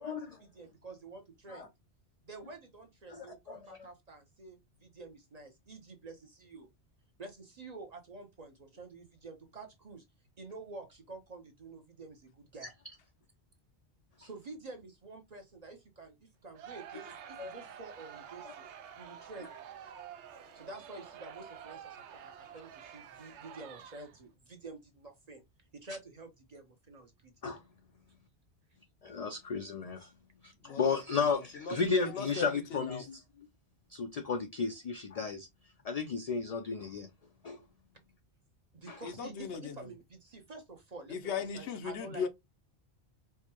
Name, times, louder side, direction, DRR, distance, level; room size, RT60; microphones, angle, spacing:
voice 1, 0.0-1.7 2.2-6.7 7.2-10.0 10.4-12.7 14.2-18.7 19.0-19.5 20.5-25.4 25.7-27.3 38.7-41.2 41.5-42.2, right 3 dB, 40° right, 0.7 m, -49 dB
voice 2, 3.1-3.6 17.4-17.5 27.4-27.6 29.0-30.1 30.4-33.2 33.9-35.5 35.8-37.1 37.4-37.6 38.9-39.0, left 5 dB, 55° left, 0.4 m, -33 dB
Crowd, 16.5-24.3, right 8 dB, 80° right, 0.9 m, -49 dB
voice 3, 30.7-31.2 31.6-31.8 32.1-33.0 39.0-39.8 41.1-42.3, left 6 dB, 80° left, 1.0 m, -38 dB
4.6 x 2.1 x 2.9 m
omnidirectional pair, 1.1 m